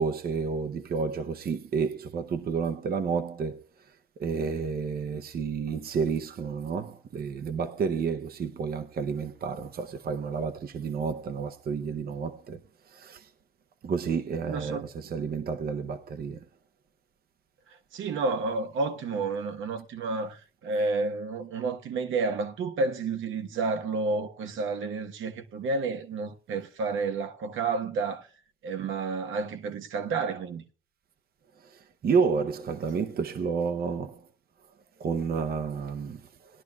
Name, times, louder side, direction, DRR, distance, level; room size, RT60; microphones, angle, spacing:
voice 1, 0.0-12.6 12.9-13.3 13.8-16.4 31.6-34.3 35.0-36.6, right 5 dB, 50° right, 0.8 m, -30 dB
voice 2, 14.5-14.9 17.9-28.3 28.6-30.6, right 3 dB, 80° right, 1.2 m, -30 dB
19.5 x 10.5 x 2.3 m
cardioid pair, 90°, 20 cm